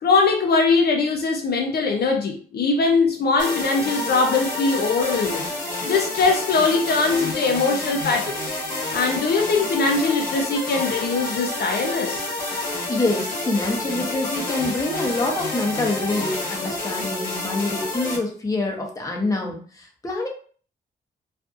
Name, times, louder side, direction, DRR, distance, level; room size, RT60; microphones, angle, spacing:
voice 1, 0.0-5.5 5.8-8.3 8.9-12.3, left 4 dB, 65° left, 2 dB, 0.5 m, -21 dB
sound 1, 3.4-18.2, left 2 dB, 50° left, 1.0 m, -29 dB
voice 2, 12.9-20.3, left 2 dB, 20° left, -1 dB, 0.7 m, -26 dB
2.5 x 2.5 x 2.4 m, 0.43 s
cardioid pair, 110°, 18 cm